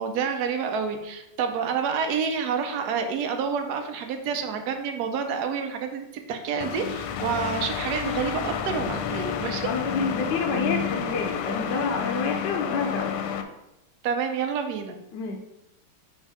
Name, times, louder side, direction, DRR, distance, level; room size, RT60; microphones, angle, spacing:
voice 1, 0.0-9.7 14.0-14.9, right 6 dB, 70° right, 5 dB, 0.9 m, -28 dB
sound 1, 6.6-13.4, left 8 dB, 85° left, 1.5 m, -30 dB
voice 2, 9.6-13.1 15.1-15.4, left 4 dB, 70° left, 2 dB, 1.1 m, -28 dB
5.5 x 3.6 x 4.8 m, 0.90 s
omnidirectional pair, 2.4 m